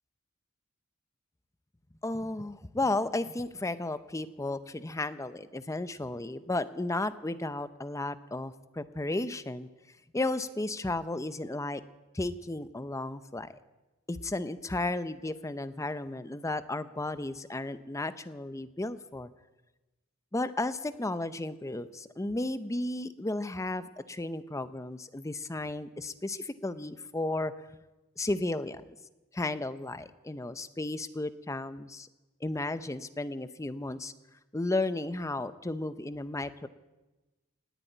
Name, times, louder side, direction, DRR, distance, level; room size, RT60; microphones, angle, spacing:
voice 1, 2.0-9.7 10.1-11.8 12.1-13.5 14.1-19.3 20.3-27.5 28.2-28.8 29.3-32.1 32.4-34.1 34.5-36.7, left 2 dB, 15° left, 12 dB, 0.6 m, -34 dB
18.5 x 8.4 x 9.1 m, 1.1 s
head